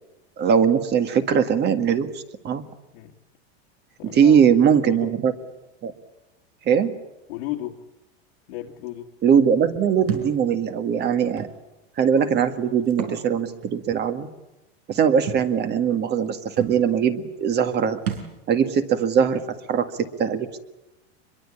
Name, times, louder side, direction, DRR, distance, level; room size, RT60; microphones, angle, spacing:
voice 1, 0.4-2.6 4.0-5.3 5.8-5.9 6.7-6.9 9.2-11.5 12.0-14.3 14.9-18.0 18.5-20.6, right 7 dB, 30° right, 8 dB, 1.9 m, -21 dB
voice 2, 4.0-4.4 4.8-5.1 7.3-7.8 8.5-9.1, left 14 dB, 80° left, -3 dB, 2.3 m, -34 dB
Thump thud, 10.1-10.3 11.4-11.5 12.9-13.2 13.6-13.7 15.3-15.5 16.3-16.4 16.6-16.8 18.0-18.3, right 8 dB, 75° right, 5.2 m, -30 dB
24.5 x 22.5 x 8.7 m, 0.97 s
supercardioid pair, 140°, 32 cm